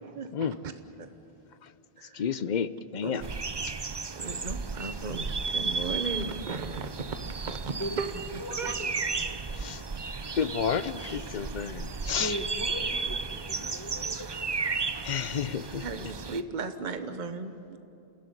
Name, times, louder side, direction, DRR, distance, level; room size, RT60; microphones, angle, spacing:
voice 1, 0.0-0.7 1.0-1.1 2.0-2.2 3.0-3.4 4.1-8.9 15.8-17.8, right 4 dB, 50° right, 8 dB, 1.2 m, -36 dB
voice 2, 2.1-3.2 9.6-9.8 10.3-12.4 15.0-16.1, left 7 dB, 50° left, 14 dB, 0.8 m, -31 dB
sound 1, 3.2-16.4, right 4 dB, 30° right, 0.6 m, -34 dB
voice 3, 8.4-8.8 9.2-9.3 12.2-14.3, equal, 20° left, 4 dB, 1.1 m, -38 dB
28.5 x 16.5 x 9.8 m, 2.8 s
omnidirectional pair, 1.1 m